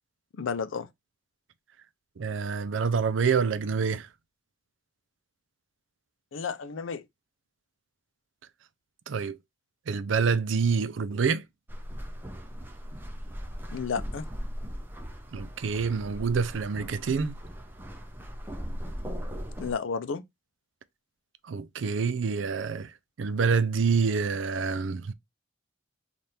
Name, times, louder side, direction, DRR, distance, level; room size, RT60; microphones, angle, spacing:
voice 1, 0.4-0.9 6.3-7.0 13.7-14.3 19.6-20.2, left 5 dB, 85° left, 0.5 m, -32 dB
voice 2, 2.2-4.1 9.1-9.4 9.9-11.4 15.3-17.4 21.5-22.9 23.2-25.1, right 5 dB, 75° right, 0.4 m, -27 dB
sound 1, 11.7-19.7, equal, 10° right, 0.6 m, -38 dB
3.4 x 2.5 x 4.2 m
head